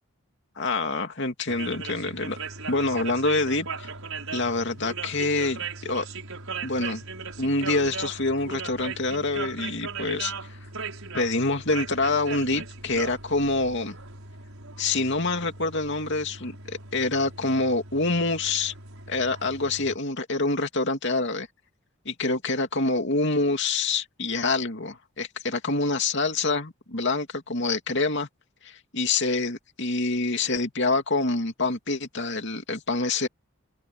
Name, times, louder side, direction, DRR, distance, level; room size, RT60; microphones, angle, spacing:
voice 1, 0.6-2.4 2.7-3.9 4.3-6.1 6.6-7.1 7.4-10.6 11.1-14.0 14.8-18.7 19.1-21.5 22.0-28.3 28.6-33.3, left 3 dB, 55° left, 2.8 m, -26 dB
sound 1, 1.5-20.0, right 4 dB, 75° right, 6.5 m, -38 dB
head